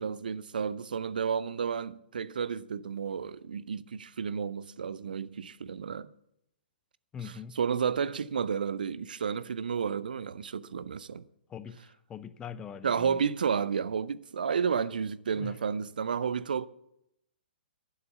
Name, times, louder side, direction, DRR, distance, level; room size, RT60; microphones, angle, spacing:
voice 1, 0.0-6.1 7.2-11.2 12.8-16.7, right 6 dB, 60° right, 0.6 m, -31 dB
voice 2, 7.1-7.5 11.5-13.1 15.4-15.5, left 7 dB, 15° left, 0.7 m, -42 dB
11.5 x 9.6 x 7.1 m
figure-of-eight pair, 120°, 5 cm